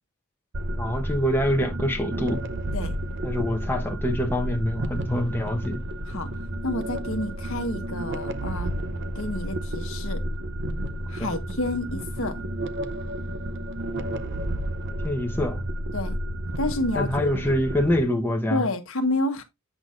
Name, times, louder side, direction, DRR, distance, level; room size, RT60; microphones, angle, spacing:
sound 1, 0.5-18.0, right 1 dB, 55° right, 0.7 m, -31 dB
voice 1, 0.8-2.4 3.2-5.8 11.1-11.4 15.0-15.7 16.9-18.6, equal, 10° left, 1.0 m, -25 dB
voice 2, 6.6-8.8 9.1-10.2 11.1-12.4 15.9-16.2 16.6-17.3 18.5-19.4, left 2 dB, 65° left, 1.1 m, -29 dB
8.0 x 5.9 x 2.5 m
head